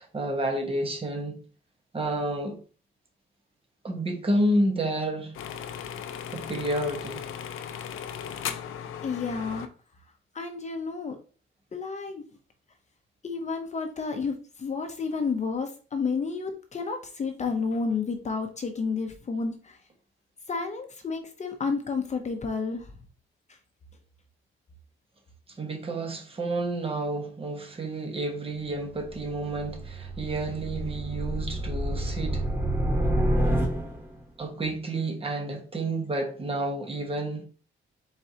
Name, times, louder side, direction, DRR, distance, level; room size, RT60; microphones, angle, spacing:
voice 1, 0.0-1.4 1.9-2.6 3.8-5.3 6.3-7.2 25.6-32.4 34.4-37.4, right 1 dB, 25° right, 1.1 m, -30 dB
sound 1, 5.3-9.7, left 8 dB, 85° left, 0.5 m, -37 dB
voice 2, 9.0-9.7 10.3-11.2 11.7-12.2 13.2-19.8 20.5-22.9, left 4 dB, 35° left, 0.7 m, -31 dB
sound 2, 29.0-34.2, right 1 dB, 10° right, 1.8 m, -28 dB
4.5 x 4.0 x 2.8 m
cardioid pair, 125°, 21 cm